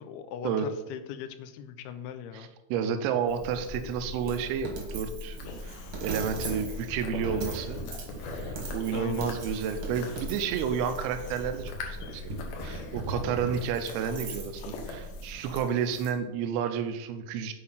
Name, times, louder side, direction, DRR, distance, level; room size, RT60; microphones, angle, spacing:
voice 1, 0.0-2.5 8.9-9.3, left 8 dB, 85° left, 9 dB, 2.6 m, -39 dB
voice 2, 2.3-7.8 8.3-17.5, right 7 dB, 85° right, 7 dB, 2.6 m, -31 dB
Coin (dropping), 3.3-15.6, right 1 dB, 55° right, 1.6 m, -39 dB
sound 1, 5.3-16.1, left 2 dB, 70° left, 2.5 m, -42 dB
8.5 x 4.4 x 5.6 m, 1.0 s
omnidirectional pair, 4.6 m